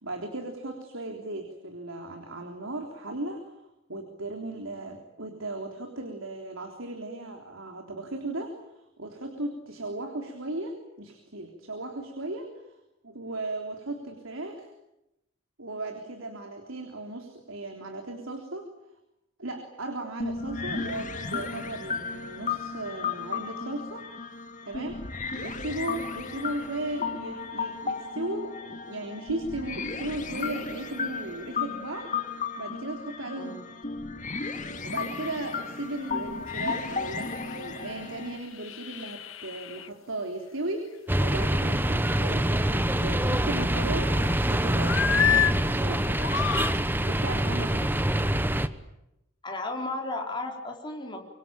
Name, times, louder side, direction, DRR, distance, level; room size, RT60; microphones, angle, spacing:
voice 1, 0.0-3.4 3.9-8.5 9.0-12.5 13.0-14.7 15.6-18.7 19.4-24.1 24.6-25.0 25.4-32.1 32.6-33.8 34.8-44.2 44.5-46.2 47.0-47.8, right 2 dB, 80° right, 4 dB, 3.6 m, -36 dB
sound 1, 20.2-38.4, left 5 dB, 40° left, 2.3 m, -34 dB
sound 2, 35.1-35.5 36.0-36.2 36.5-39.9 42.3-43.1 43.5-44.5 44.8-45.6 46.0-46.8 47.5-47.7, left 8 dB, 80° left, 1.3 m, -30 dB
sound 3, 41.1-48.7, right 1 dB, 10° right, 1.0 m, -25 dB
voice 2, 47.8-48.3 49.4-51.3, left 2 dB, 25° left, 2 dB, 4.2 m, -35 dB
26.0 x 24.5 x 9.0 m, 0.87 s
head